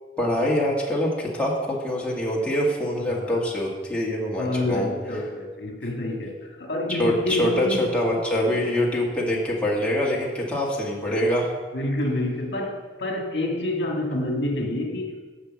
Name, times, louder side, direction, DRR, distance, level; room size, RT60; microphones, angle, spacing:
voice 1, 0.2-4.9 6.9-11.5, left 1 dB, 5° left, -4 dB, 1.7 m, -24 dB
voice 2, 4.4-7.8 11.1-11.2 11.7-15.2, left 1 dB, 70° left, 1 dB, 1.7 m, -28 dB
9.8 x 5.8 x 7.4 m, 1.4 s
head